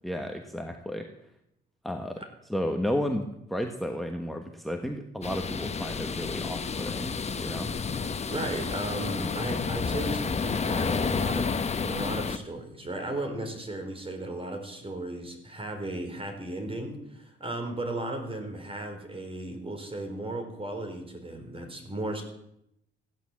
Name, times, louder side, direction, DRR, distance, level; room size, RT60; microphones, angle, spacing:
voice 1, 0.0-1.1 1.8-2.2 2.5-7.7, equal, ahead, 5 dB, 1.3 m, -33 dB
sound 1, 5.2-12.4, left 5 dB, 35° left, 1.1 m, -30 dB
voice 2, 8.3-22.2, right 1 dB, 30° right, 6 dB, 4.2 m, -35 dB
15.5 x 11.0 x 7.4 m, 0.79 s
cardioid pair, 90°, 20 cm